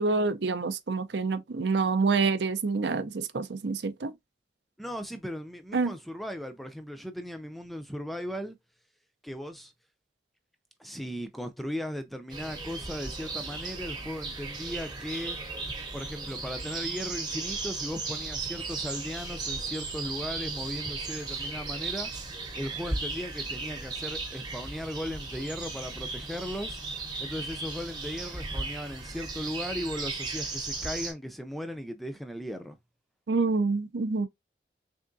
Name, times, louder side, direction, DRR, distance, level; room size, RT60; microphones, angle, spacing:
voice 1, 0.0-4.1 5.7-5.9 33.3-34.3, right 4 dB, 80° right, 0.6 m, -27 dB
voice 2, 4.8-8.6 9.2-9.7 10.8-15.4 15.9-22.1 22.6-26.8 27.2-32.8, equal, ahead, 0.4 m, -37 dB
sound 1, 12.3-31.1, right 3 dB, 25° right, 0.8 m, -36 dB
3.6 x 3.5 x 2.6 m
head